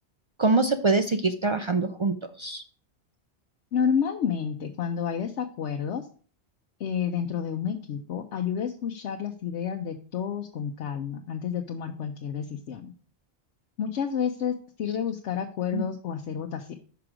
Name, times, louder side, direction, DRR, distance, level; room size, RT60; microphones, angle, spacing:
voice 1, 0.4-2.6 15.7-15.8, right 3 dB, 50° right, 7 dB, 0.3 m, -24 dB
voice 2, 3.7-6.1 6.8-12.9 13.8-16.7, left 7 dB, 85° left, 3 dB, 1.0 m, -30 dB
5.9 x 4.9 x 6.0 m, 0.42 s
omnidirectional pair, 1.2 m